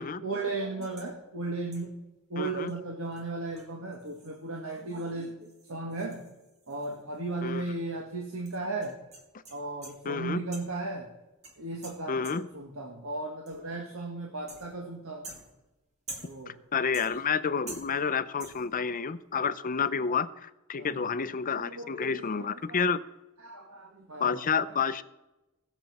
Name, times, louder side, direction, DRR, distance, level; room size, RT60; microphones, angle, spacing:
voice 1, 0.0-1.9 2.3-6.2 6.7-9.0 9.5-11.1 11.6-15.3 16.2-16.6 20.7-21.0 21.5-22.8 23.4-24.4 24.7-24.8, right 2 dB, 70° right, 0 dB, 1.7 m, -36 dB
sound 1, 0.8-1.2 1.7-2.0 2.7-2.8 3.1-3.2 3.6-7.3 7.6-7.7 8.5-10.1 10.5-10.9 11.4-12.7 13.5-13.8 14.5-14.9 15.2-16.6 16.9-17.4 17.7-18.1 18.4-18.8, right 2 dB, 35° right, 2.2 m, -48 dB
voice 2, 2.4-2.7 7.4-7.6 10.1-10.4 12.1-12.5 16.5-23.0 24.2-25.0, left 6 dB, 40° left, 15 dB, 0.5 m, -30 dB
20.5 x 7.0 x 4.2 m, 0.98 s
head